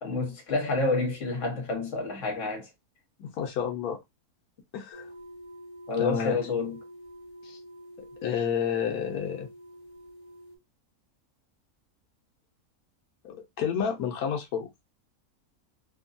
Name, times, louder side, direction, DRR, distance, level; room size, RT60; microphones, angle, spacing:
voice 1, 0.0-2.7 5.9-6.8, left 3 dB, 55° left, 1.5 m, -29 dB
voice 2, 3.2-4.0 4.7-5.1 6.0-6.4 7.4-7.6 8.2-9.5 13.2-14.7, left 7 dB, 90° left, 1.2 m, -30 dB
sound 1, 4.9-10.6, equal, 25° left, 1.1 m, -47 dB
3.1 x 2.2 x 2.5 m
omnidirectional pair, 1.5 m